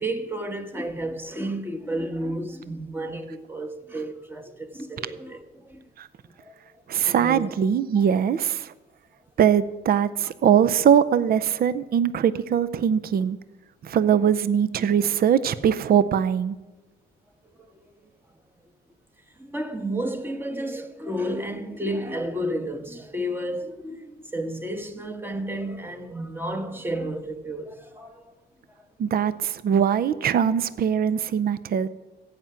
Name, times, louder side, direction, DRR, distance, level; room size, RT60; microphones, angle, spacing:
voice 1, 0.0-5.9 6.4-7.5 7.9-8.0 13.9-14.2 17.4-18.1 19.4-28.3 28.8-28.9, right 1 dB, 10° right, 1.4 m, -32 dB
voice 2, 6.9-8.7 9.4-13.4 13.8-16.6 29.0-31.9, right 8 dB, 50° right, 0.6 m, -21 dB
15.0 x 5.9 x 9.0 m
cardioid pair, 90°, 20 cm